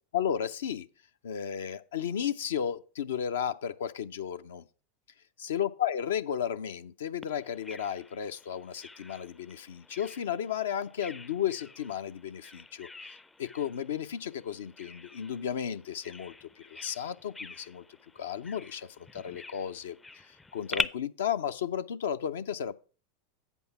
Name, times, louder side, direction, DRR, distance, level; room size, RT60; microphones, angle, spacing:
voice 1, 0.1-0.9 1.2-4.6 5.4-12.9 13.4-17.8 18.2-20.0 20.5-22.7, left 9 dB, 70° left, 0.5 m, -33 dB
Bird vocalization bird call bird song, 7.2-20.8, left 3 dB, 15° left, 0.4 m, -43 dB
8.1 x 5.4 x 5.7 m
figure-of-eight pair, 85°, 0 cm